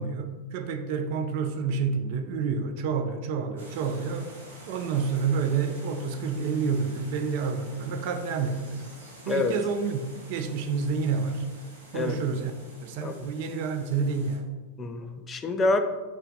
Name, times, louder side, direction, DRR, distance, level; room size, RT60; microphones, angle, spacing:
voice 1, 0.0-4.3 4.7-8.9 9.3-11.5 11.9-14.5, right 5 dB, 45° right, 6 dB, 0.4 m, -29 dB
sound 1, 3.6-14.4, right 1 dB, 75° right, 1.0 m, -49 dB
voice 2, 13.0-13.3 14.8-15.8, left 3 dB, 20° left, 8 dB, 0.3 m, -27 dB
4.7 x 2.2 x 3.8 m, 1.3 s
figure-of-eight pair, 90°, 0 cm